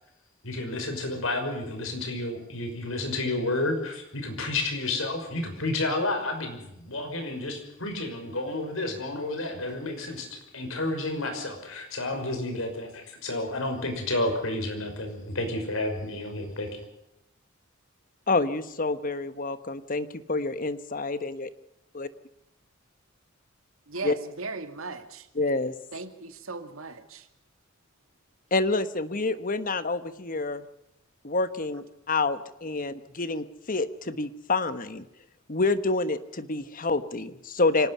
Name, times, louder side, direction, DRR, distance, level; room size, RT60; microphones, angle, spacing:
voice 1, 0.4-16.7, left 2 dB, 80° left, 5 dB, 5.7 m, -31 dB
voice 2, 18.3-21.5 21.9-22.1 24.0-24.2 25.3-25.7 28.5-30.7 31.2-35.1 35.5-37.9, left 3 dB, 40° left, 12 dB, 1.3 m, -28 dB
voice 3, 23.9-25.2 25.9-27.2, right 3 dB, 85° right, 8 dB, 2.2 m, -37 dB
25.5 x 18.5 x 5.6 m, 0.84 s
head